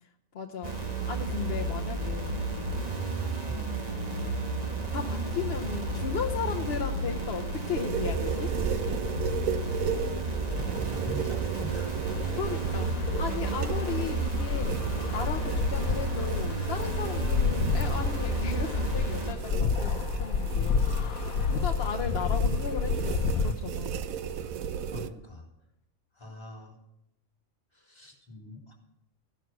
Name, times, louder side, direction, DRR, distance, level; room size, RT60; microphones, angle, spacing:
voice 1, 0.3-2.4 4.9-8.5 12.3-14.8 15.1-21.1 21.5-24.0, left 6 dB, 50° left, 2 dB, 1.0 m, -36 dB
sound 1, 0.6-19.3, right 2 dB, 30° right, 1.8 m, -32 dB
sound 2, 7.8-25.1, right 8 dB, 80° right, 1.2 m, -35 dB
voice 2, 10.2-12.2 24.6-25.5 26.1-26.8 27.7-28.7, left 1 dB, 20° left, -3 dB, 3.9 m, -43 dB
sound 3, 12.2-23.5, left 6 dB, 85° left, 1.2 m, -30 dB
15.0 x 11.0 x 6.1 m, 0.83 s
omnidirectional pair, 1.4 m